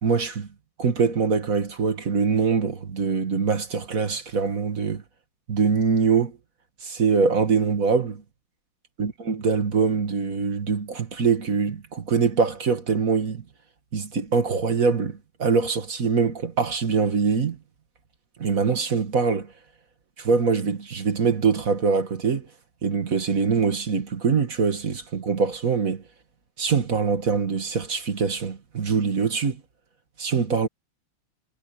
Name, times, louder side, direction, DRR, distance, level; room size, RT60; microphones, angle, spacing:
voice 1, 0.0-0.5 0.8-5.0 5.5-6.4 6.8-8.2 9.0-13.4 13.9-17.6 18.4-19.5 20.2-22.5 22.8-26.0 26.6-29.6 30.2-30.7, right 5 dB, 40° right, 2.2 m, -23 dB
omnidirectional pair, 2.3 m